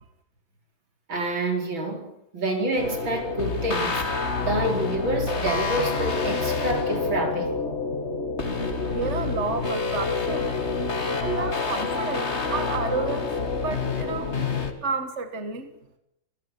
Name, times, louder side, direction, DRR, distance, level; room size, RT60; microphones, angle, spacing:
voice 1, 1.1-4.1 4.4-7.5, right 1 dB, 65° right, 5.3 m, -27 dB
sound 1, 2.8-14.7, left 4 dB, 30° left, 2.4 m, -27 dB
voice 2, 8.9-10.5 11.2-14.3 14.8-15.7, right 4 dB, 35° right, 1.7 m, -31 dB
28.0 x 16.0 x 8.2 m
omnidirectional pair, 2.3 m